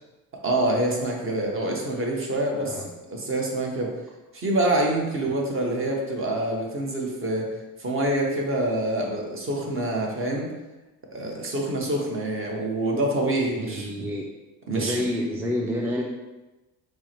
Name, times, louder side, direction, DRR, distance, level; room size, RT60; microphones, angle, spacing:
voice 1, 0.4-2.8 3.1-3.9 4.3-7.5 7.8-10.5 11.1-14.0 14.7-15.0, right 1 dB, 35° right, 0 dB, 1.0 m, -26 dB
voice 2, 13.6-14.2 14.7-16.0, left 1 dB, 5° right, -1 dB, 0.3 m, -28 dB
4.5 x 2.1 x 4.3 m, 1.1 s
cardioid pair, 110°, 37 cm